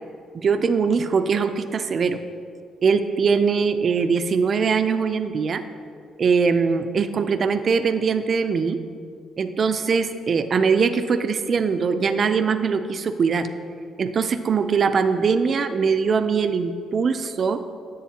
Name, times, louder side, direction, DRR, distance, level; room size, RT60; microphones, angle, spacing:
voice 1, 0.3-2.2 2.8-5.6 6.2-8.8 9.4-13.5 14.0-17.6, right 5 dB, 50° right, 9 dB, 0.5 m, -21 dB
11.5 x 7.1 x 2.9 m, 2.2 s
cardioid pair, 90°, 0 cm